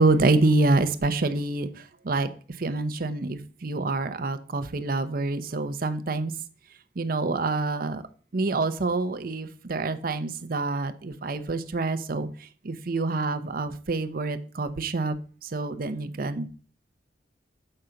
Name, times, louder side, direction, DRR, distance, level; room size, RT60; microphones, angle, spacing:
voice 1, 0.0-1.7 2.0-2.3 2.6-6.3 7.0-8.0 8.3-12.3 12.6-15.2 15.4-16.5, right 3 dB, 55° right, 10 dB, 0.7 m, -26 dB
7.7 x 3.9 x 5.7 m, 0.41 s
head